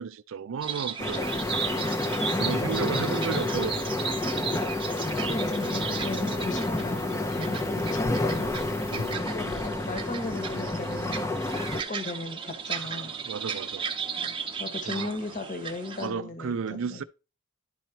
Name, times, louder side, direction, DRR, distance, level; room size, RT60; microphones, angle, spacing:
voice 1, 0.0-1.6 2.4-4.0 8.9-9.2 12.7-13.8 14.9-15.2 16.0-17.0, right 6 dB, 60° right, 0.4 m, -34 dB
sound 1, 0.6-16.1, right 6 dB, 25° right, 0.7 m, -36 dB
sound 2, 1.0-11.8, left 2 dB, 15° left, 0.5 m, -29 dB
sound 3, 1.2-9.2, left 6 dB, 65° left, 0.5 m, -46 dB
voice 2, 2.6-3.0 5.2-8.5 9.3-11.2 11.7-13.1 14.2-17.0, left 2 dB, 35° left, 1.2 m, -36 dB
11.0 x 4.6 x 2.8 m
head